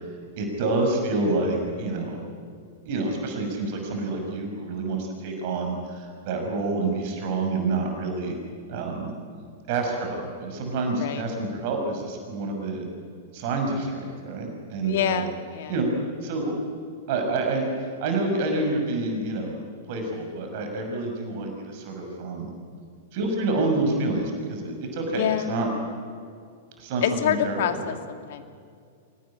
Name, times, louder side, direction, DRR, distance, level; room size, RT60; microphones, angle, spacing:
voice 1, 0.4-2.2 2.9-8.3 8.7-9.1 9.7-12.9 13.3-15.2 15.7-15.9 16.2-16.5 17.1-17.7 18.0-19.5 19.9-22.5 23.1-25.7 26.8-27.6, right 2 dB, 50° right, 2 dB, 6.3 m, -28 dB
voice 2, 14.8-15.7 25.1-25.5 27.0-28.4, left 9 dB, 60° left, 7 dB, 2.4 m, -26 dB
25.5 x 19.0 x 8.8 m, 2.3 s
figure-of-eight pair, 105°, 0 cm